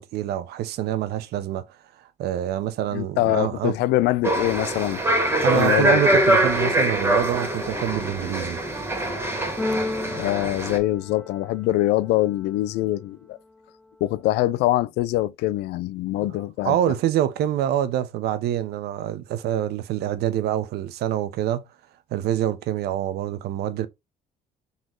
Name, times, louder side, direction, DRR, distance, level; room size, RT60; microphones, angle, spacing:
voice 1, 0.0-3.7 5.2-8.6 16.6-21.6 22.1-23.9, right 11 dB, 70° right, 0.6 m, -26 dB
voice 2, 2.9-5.0 5.5-6.0 10.0-13.4 14.0-16.8, left 16 dB, 80° left, 0.4 m, -24 dB
sound 1, 4.2-10.8, right 1 dB, 15° right, 1.7 m, -23 dB
Keyboard (musical), 9.6-11.7, left 2 dB, 5° left, 0.5 m, -32 dB
4.1 x 3.0 x 3.7 m
cardioid pair, 110°, 17 cm